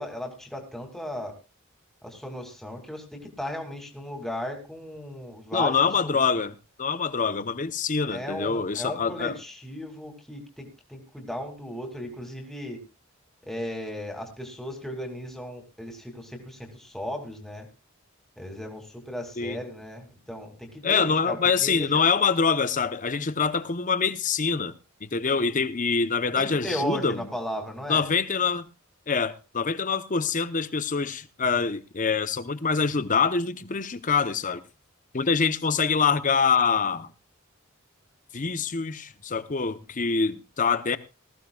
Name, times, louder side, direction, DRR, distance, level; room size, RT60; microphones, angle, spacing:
voice 1, 0.0-1.4 2.0-5.8 6.0-6.2 8.1-12.8 13.5-17.7 18.4-22.0 26.4-28.1, equal, ahead, 2.4 m, -36 dB
voice 2, 5.5-9.4 19.4-19.6 20.8-24.7 25.0-27.2 27.9-28.7 29.1-34.6 35.1-37.1 38.3-41.0, left 5 dB, 40° left, 0.8 m, -25 dB
19.5 x 14.5 x 2.3 m
head